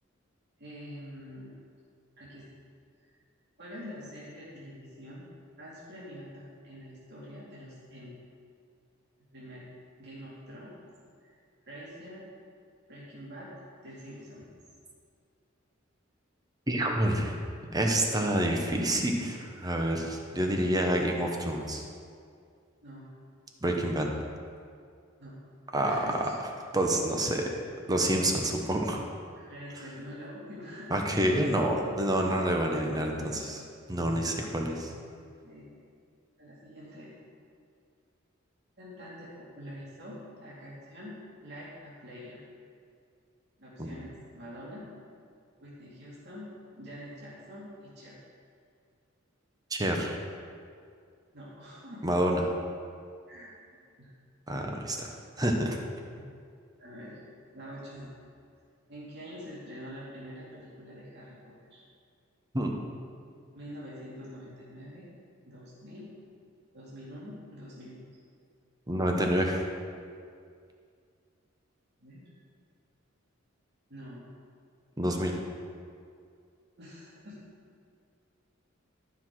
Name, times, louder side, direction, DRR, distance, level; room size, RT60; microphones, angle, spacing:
voice 1, 0.6-1.6 2.2-2.4 3.0-3.1 3.6-8.2 9.3-9.7 10.0-10.7 11.2-11.3 11.6-12.3 12.9-13.5 13.8-14.5 22.8-23.1 25.2-25.5 25.8-26.3 27.3-27.5 28.6-28.8 29.3-31.0 32.6-33.4 35.2-35.8 36.4-37.1 38.8-41.2 41.4-42.4 43.6-44.8 45.6-46.5 46.8-48.2 51.3-52.0 53.3-54.1 56.1-56.3 56.8-57.2 57.5-58.1 58.9-61.8 63.5-65.1 65.5-66.1 66.7-68.0 72.0-72.3 73.9-74.3 76.8-77.4, equal, 60° right, -8 dB, 2.4 m, -46 dB
voice 2, 16.7-17.4 17.7-21.8 23.6-24.1 25.7-26.0 26.7-27.4 27.9-29.0 30.9-33.6 33.9-34.9 43.8-43.9 49.7-50.2 52.0-52.5 54.5-55.1 55.4-55.8 62.5-62.7 68.9-69.6 75.0-75.3, right 1 dB, 20° right, 2 dB, 0.9 m, -28 dB
12.0 x 5.9 x 4.7 m, 2.2 s
head